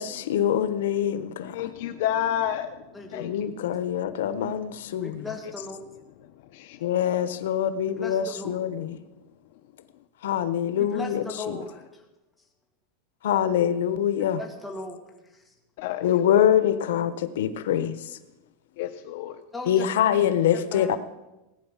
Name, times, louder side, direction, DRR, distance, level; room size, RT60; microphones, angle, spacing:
voice 1, 0.0-1.6 3.2-5.3 6.8-9.0 10.2-11.6 13.2-14.4 16.0-18.2 19.7-21.0, left 10 dB, 85° left, 12 dB, 1.1 m, -24 dB
voice 2, 1.2-3.4 6.2-7.2 15.8-16.4 18.8-19.4, left 10 dB, 55° left, 8 dB, 0.8 m, -31 dB
voice 3, 2.9-3.3 5.0-5.8 8.0-8.7 10.8-12.0 14.4-15.0 15.3-15.5 19.5-19.9 20.5-20.9, left 3 dB, 5° left, 0 dB, 2.2 m, -37 dB
18.0 x 9.3 x 7.3 m, 1.0 s
supercardioid pair, 175°, 0 cm